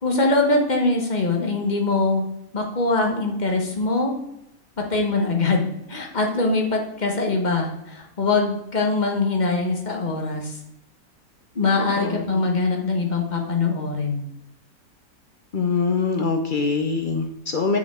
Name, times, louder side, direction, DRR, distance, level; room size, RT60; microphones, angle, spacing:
voice 1, 0.0-2.2 2.5-4.1 4.8-10.6 11.5-14.2, left 3 dB, 35° left, 2 dB, 1.1 m, -22 dB
voice 2, 12.0-12.6 15.5-17.8, left 4 dB, 50° left, 5 dB, 0.6 m, -24 dB
6.8 x 6.0 x 3.6 m, 0.82 s
omnidirectional pair, 1.6 m